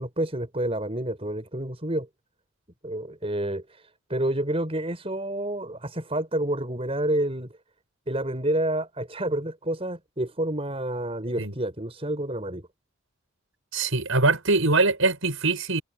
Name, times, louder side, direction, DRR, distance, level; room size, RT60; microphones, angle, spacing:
voice 1, 0.0-2.1 2.8-7.5 8.1-12.7, right 1 dB, 25° right, 5.4 m, -29 dB
voice 2, 13.7-15.8, right 3 dB, 70° right, 5.9 m, -22 dB
head